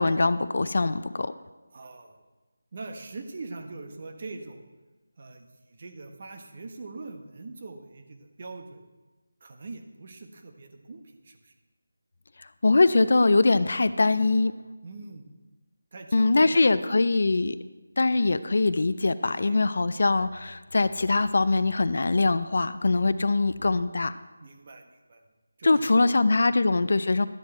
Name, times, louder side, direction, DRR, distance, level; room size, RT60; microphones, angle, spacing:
voice 1, 0.0-1.3 12.6-14.5 16.1-17.6 18.0-24.2 25.6-27.3, left 3 dB, 60° left, 14 dB, 0.5 m, -22 dB
voice 2, 1.7-2.2 2.7-4.7 5.2-8.8 9.4-11.5 14.8-15.3 15.9-17.1 19.2-19.7 24.4-25.3 25.6-26.2 26.4-26.6, right 3 dB, 40° right, 5 dB, 1.3 m, -42 dB
12.5 x 8.8 x 4.3 m, 1.2 s
figure-of-eight pair, 165°, 0 cm